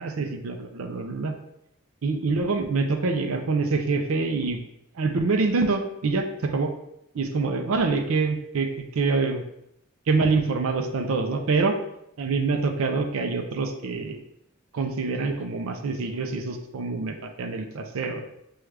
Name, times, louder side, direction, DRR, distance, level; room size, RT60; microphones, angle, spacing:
voice 1, 0.0-1.3 2.0-4.6 5.0-6.7 7.1-9.4 10.1-11.8 12.2-14.2 14.7-18.3, right 3 dB, 75° right, 5 dB, 0.5 m, -25 dB
6.2 x 2.3 x 3.2 m, 0.81 s
head